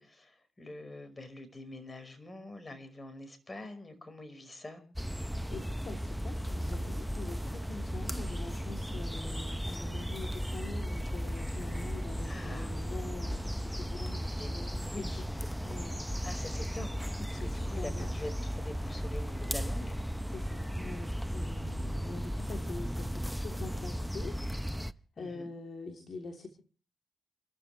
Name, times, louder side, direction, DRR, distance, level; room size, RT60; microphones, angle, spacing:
voice 1, 0.0-4.8 12.2-12.8 14.3-14.5 14.8-15.3 16.2-20.0 25.2-25.5, left 1 dB, 25° left, 9 dB, 5.1 m, -45 dB
sound 1, 5.0-24.9, equal, ahead, 0.8 m, -35 dB
voice 2, 5.2-15.3 15.6-16.0 17.2-18.1 19.3-19.4 20.3-26.5, left 3 dB, 55° left, 2 dB, 3.3 m, -45 dB
29.0 x 13.0 x 3.3 m, 0.39 s
hypercardioid pair, 40°, 0 cm